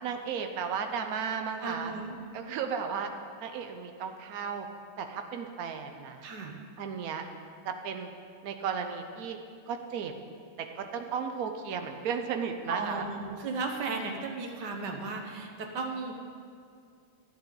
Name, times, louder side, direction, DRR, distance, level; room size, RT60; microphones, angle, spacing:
voice 1, 0.0-1.9 2.3-3.1 3.4-4.7 5.0-6.3 6.8-7.2 7.6-8.1 8.4-9.4 9.7-10.1 10.6-13.1, right 6 dB, 75° right, 6 dB, 0.8 m, -34 dB
voice 2, 1.6-2.2 6.2-6.6 12.7-16.1, right 3 dB, 60° right, 2 dB, 1.4 m, -35 dB
12.5 x 9.6 x 3.9 m, 2.3 s
omnidirectional pair, 2.4 m